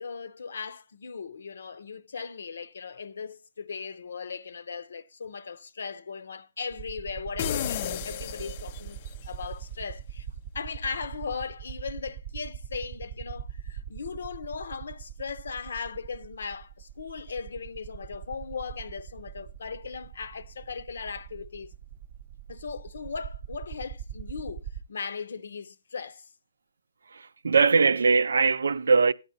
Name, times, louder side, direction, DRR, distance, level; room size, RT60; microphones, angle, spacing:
voice 1, 0.0-9.0 9.3-10.3 10.5-21.7 22.5-26.3, left 5 dB, 70° left, 0.7 m, -38 dB
sound 1, 6.7-24.8, right 9 dB, 30° right, 0.6 m, -41 dB
sound 2, 7.4-9.2, left 11 dB, 35° left, 0.4 m, -33 dB
voice 2, 27.1-29.1, right 4 dB, 80° right, 0.4 m, -21 dB
13.5 x 9.5 x 2.7 m
hypercardioid pair, 155°, 0 cm